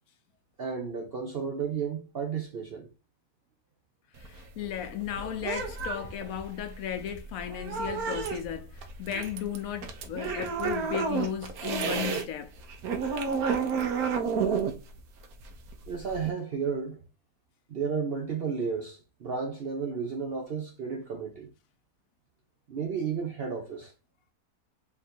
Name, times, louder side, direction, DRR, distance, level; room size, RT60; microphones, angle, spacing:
voice 1, 0.6-2.9 15.9-17.0 17.7-21.5 22.7-23.9, right 6 dB, 60° right, 0.6 m, -33 dB
sound 1, 4.1-12.2 12.6-16.3, right 5 dB, 75° right, 1.2 m, -31 dB
voice 2, 4.2-12.5, left 10 dB, 70° left, 1.0 m, -35 dB
3.6 x 2.5 x 4.2 m
omnidirectional pair, 1.6 m